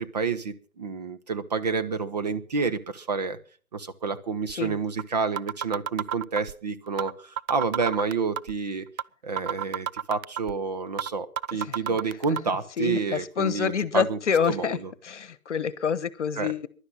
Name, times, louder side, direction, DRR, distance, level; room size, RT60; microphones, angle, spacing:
voice 1, 0.0-3.4 3.7-8.9 9.2-14.2 14.5-14.9 16.4-16.5, right 5 dB, 30° right, 10 dB, 0.7 m, -29 dB
sound 1, 4.5-4.6 5.0-5.1 5.4-6.5 7.0-7.1 7.4-8.5 9.0-9.1 9.4-10.5 11.0-11.1 11.4-12.4, right 9 dB, 75° right, 0.6 m, -30 dB
voice 2, 12.3-14.8 15.0-16.7, left 7 dB, 55° left, 18 dB, 1.2 m, -27 dB
16.0 x 11.5 x 5.6 m, 0.40 s
hypercardioid pair, 150°, 42 cm